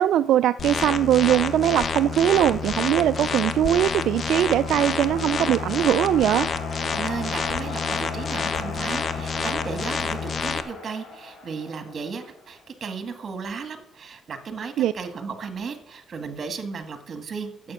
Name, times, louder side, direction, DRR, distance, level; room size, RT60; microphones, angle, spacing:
voice 1, 0.0-6.5 14.8-14.9, right 11 dB, 80° right, 0.3 m, -21 dB
sound 1, 0.6-10.6, left 5 dB, 45° left, 0.9 m, -28 dB
sound 2, 3.3-12.6, left 3 dB, 85° left, 4.7 m, -39 dB
voice 2, 7.0-17.7, right 5 dB, 45° right, 1.8 m, -35 dB
9.4 x 7.6 x 6.1 m
cardioid pair, 90°, 0 cm